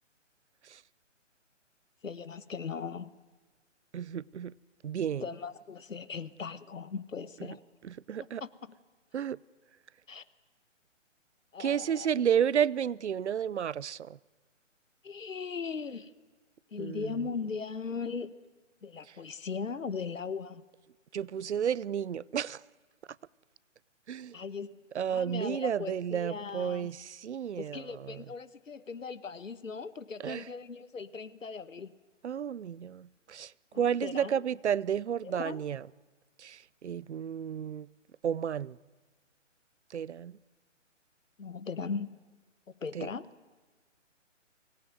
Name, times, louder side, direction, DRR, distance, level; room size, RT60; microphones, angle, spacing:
voice 1, 2.0-3.1 5.2-7.6 8.4-8.7 10.1-10.2 11.5-12.1 15.0-16.1 16.7-18.3 18.8-20.6 24.3-24.8 25.1-26.9 27.6-31.9 33.7-34.4 35.2-35.6 41.4-42.1 42.7-43.3, left 5 dB, 85° left, 1.4 m, -38 dB
voice 2, 3.9-4.5 4.8-5.2 8.1-8.4 9.1-9.4 11.6-14.2 16.8-17.1 21.1-22.6 24.1-24.4 24.9-28.2 30.2-30.4 32.2-33.5 33.8-35.8 36.4-37.9 38.2-38.8 39.9-40.3 42.9-43.1, right 8 dB, 60° right, 0.6 m, -31 dB
24.0 x 18.5 x 9.4 m
hypercardioid pair, 150°, 38 cm